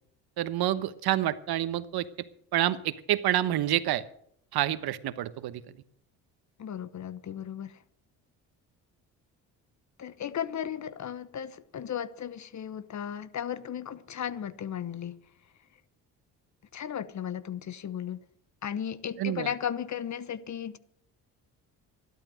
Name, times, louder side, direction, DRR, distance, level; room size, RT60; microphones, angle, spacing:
voice 1, 0.4-2.1 2.5-4.0 4.5-5.6 19.2-19.5, right 13 dB, 65° right, 1.1 m, -28 dB
voice 2, 6.6-7.8 10.0-15.2 16.7-18.2 18.6-20.8, left 9 dB, 45° left, 1.0 m, -35 dB
13.5 x 12.0 x 6.4 m
supercardioid pair, 60°, 41 cm